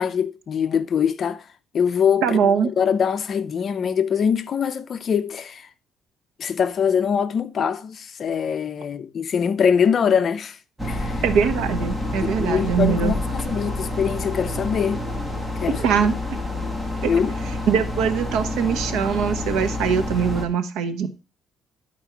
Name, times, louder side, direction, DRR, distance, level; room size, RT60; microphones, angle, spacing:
voice 1, 0.0-1.4 1.7-2.4 2.8-5.7 6.4-10.6 10.8-11.2 12.2-15.1 15.6-15.8 17.0-17.4, left 7 dB, 40° left, 0.6 m, -23 dB
voice 2, 2.2-2.7 11.2-13.1 15.7-16.1 17.0-17.1 17.7-21.1, right 7 dB, 90° right, 1.1 m, -22 dB
sound 1, 10.8-20.5, left 1 dB, 5° right, 1.1 m, -28 dB
10.5 x 4.5 x 4.6 m
cardioid pair, 160°, 0 cm